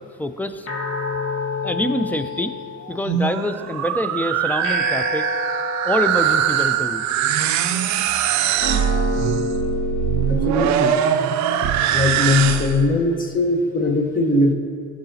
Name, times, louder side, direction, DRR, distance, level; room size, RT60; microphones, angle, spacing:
voice 1, 0.2-0.7 1.6-2.5 2.9-5.3 5.8-7.0, left 1 dB, 5° left, 9 dB, 0.4 m, -25 dB
sound 1, 0.7-3.2 4.6-7.2 8.6-11.2, left 2 dB, 45° left, 1.2 m, -29 dB
sound 2, 2.9-12.9, right 9 dB, 65° right, 0.5 m, -22 dB
voice 2, 10.3-11.0 11.9-14.5, left 2 dB, 25° left, 4 dB, 1.0 m, -20 dB
13.0 x 4.9 x 2.7 m, 2.3 s
supercardioid pair, 85°, 31 cm